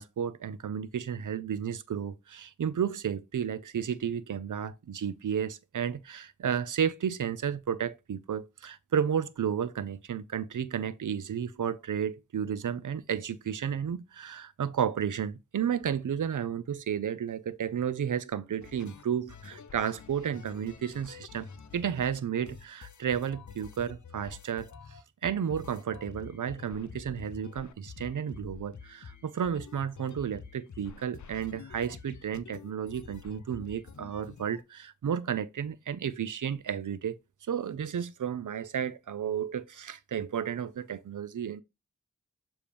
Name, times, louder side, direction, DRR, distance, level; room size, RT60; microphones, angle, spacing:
voice 1, 0.0-21.5 21.7-24.7 25.2-37.2 37.5-41.6, right 8 dB, 90° right, 0.5 m, -32 dB
sound 1, 18.6-22.2 22.4-34.6, left 6 dB, 70° left, 0.7 m, -48 dB
6.9 x 2.9 x 5.0 m
cardioid pair, 40°, 30 cm